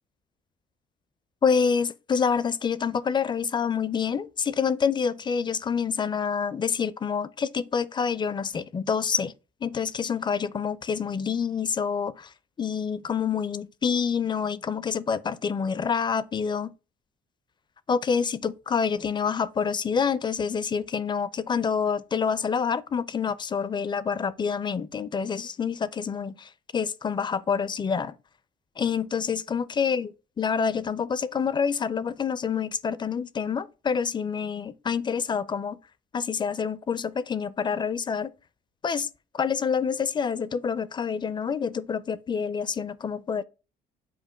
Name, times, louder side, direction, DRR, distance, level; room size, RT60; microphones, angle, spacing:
voice 1, 1.4-9.3 9.6-12.3 12.6-16.7 17.9-28.1 28.8-35.8 36.1-38.3 38.8-39.1 39.3-43.4, left 6 dB, 25° left, 0.4 m, -27 dB
7.5 x 2.6 x 5.0 m
cardioid pair, 110°, 17 cm